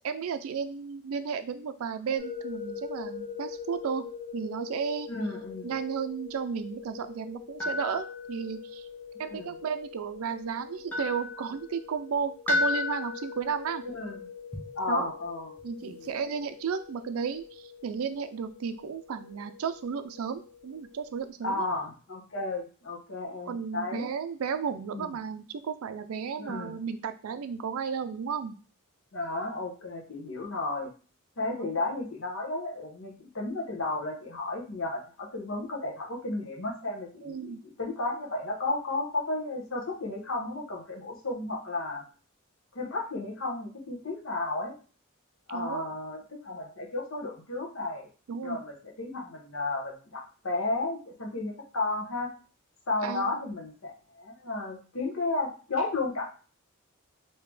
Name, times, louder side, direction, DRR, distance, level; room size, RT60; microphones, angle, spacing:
voice 1, 0.0-4.1 4.3-5.1 5.6-8.9 9.2-13.8 14.9-15.1 15.6-21.6 23.5-28.6 31.4-31.7 37.2-37.6 45.5-45.9 48.3-48.6 53.0-53.4, right 6 dB, 85° right, 10 dB, 0.4 m, -33 dB
sound 1, 2.2-21.3, left 3 dB, 5° left, 0.8 m, -38 dB
voice 2, 5.1-5.7 9.1-9.5 13.9-14.3 14.8-15.5 15.8-16.1 21.4-24.1 24.9-25.1 26.4-26.8 29.1-30.9 31.4-42.0 42.7-44.7 45.5-48.1 48.4-52.3 52.9-56.2, left 2 dB, 70° left, -1 dB, 1.0 m, -33 dB
3.2 x 2.8 x 3.4 m, 0.38 s
head